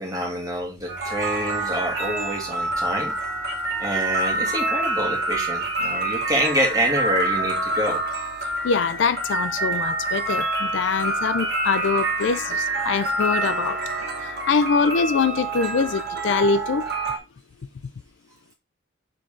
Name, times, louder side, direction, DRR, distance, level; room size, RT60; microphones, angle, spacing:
voice 1, 0.0-3.1 3.8-8.0, equal, 15° right, 1.9 m, -26 dB
sound 1, 0.9-17.2, right 2 dB, 50° right, 1.4 m, -27 dB
voice 2, 8.6-13.8 14.2-16.8, left 5 dB, 65° left, 0.4 m, -23 dB
6.7 x 3.8 x 3.7 m
head